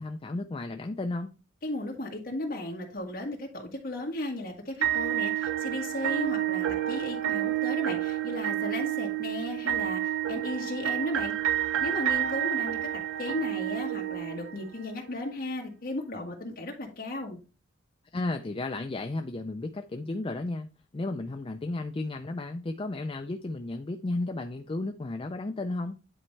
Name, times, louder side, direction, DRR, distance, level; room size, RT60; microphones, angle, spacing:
voice 1, 0.0-1.4 18.1-20.7 20.9-26.0, left 2 dB, 25° left, 0.4 m, -33 dB
voice 2, 1.6-10.0 10.3-11.3 11.8-17.4, left 1 dB, 45° left, 1.8 m, -35 dB
sound 1, 4.8-14.8, right 12 dB, 85° right, 0.7 m, -29 dB
9.9 x 4.4 x 3.3 m
head